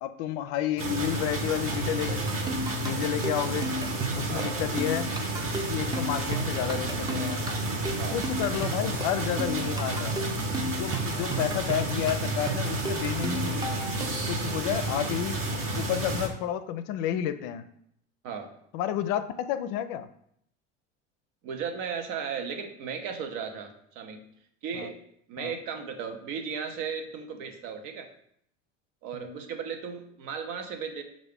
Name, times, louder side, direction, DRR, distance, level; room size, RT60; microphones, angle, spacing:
voice 1, 0.0-3.7 4.1-5.1 5.7-7.4 8.1-10.2 10.6-13.8 14.3-15.4 15.7-17.6 18.7-20.1 24.7-24.9 25.4-25.6 29.1-29.4, left 10 dB, 60° left, 11 dB, 0.5 m, -31 dB
sound 1, 0.8-16.3, right 2 dB, 35° right, 1.0 m, -31 dB
sound 2, 2.1-14.4, right 1 dB, 10° right, 0.4 m, -35 dB
voice 2, 21.4-24.2 24.6-25.0 25.3-28.1 29.0-31.0, right 6 dB, 60° right, 5 dB, 0.8 m, -35 dB
5.5 x 2.5 x 3.5 m, 0.68 s
hypercardioid pair, 75°, 36 cm